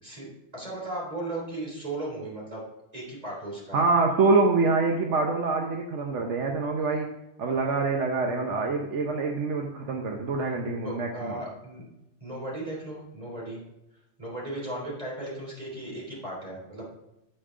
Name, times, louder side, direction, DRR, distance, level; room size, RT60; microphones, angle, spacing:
voice 1, 0.0-2.6 2.9-3.8 10.8-11.8 12.2-13.6 14.2-16.8, right 1 dB, 35° right, -3 dB, 3.5 m, -36 dB
voice 2, 3.7-7.1 7.4-11.3, right 3 dB, 80° right, 2 dB, 1.2 m, -25 dB
8.7 x 7.9 x 3.7 m, 0.88 s
omnidirectional pair, 1.2 m